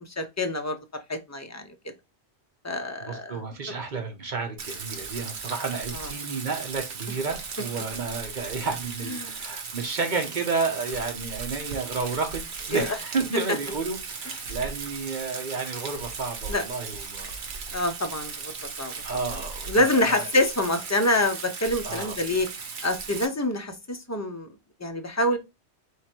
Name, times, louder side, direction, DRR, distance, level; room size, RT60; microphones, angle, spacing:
voice 1, 0.0-0.8 1.1-1.7 2.6-3.4 5.9-6.1 9.1-9.4 12.7-12.9 16.5-16.7 17.7-18.5 18.8-19.2 19.7-22.5 22.8-24.5 24.8-25.4, left 1 dB, 25° left, 6 dB, 0.4 m, -26 dB
voice 2, 3.0-12.4 12.7-17.4 19.0-20.3 21.8-22.1, right 4 dB, 45° right, 5 dB, 1.0 m, -31 dB
Rain, 4.6-23.3, right 5 dB, 70° right, 1.1 m, -37 dB
3.7 x 3.2 x 4.4 m, 0.24 s
omnidirectional pair, 1.2 m